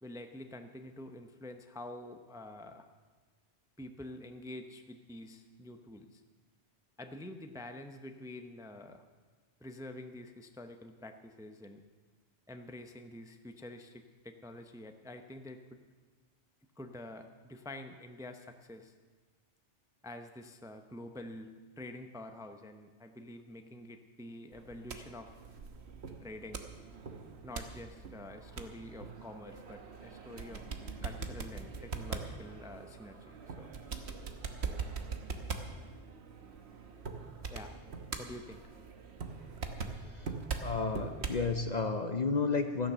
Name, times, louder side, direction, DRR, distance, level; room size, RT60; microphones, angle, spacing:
voice 1, 0.0-2.9 3.8-6.2 7.0-9.0 9.6-11.8 12.5-15.8 16.8-18.9 20.0-25.3 26.2-26.7 27.4-30.6 31.0-33.7 37.5-37.7 38.2-38.7, left 1 dB, 5° right, 6 dB, 0.6 m, -47 dB
sound 1, 24.5-41.5, right 4 dB, 65° right, 1.3 m, -42 dB
voice 2, 40.6-42.9, left 4 dB, 45° left, 7 dB, 0.7 m, -32 dB
14.0 x 10.0 x 6.8 m, 1.4 s
omnidirectional pair, 1.2 m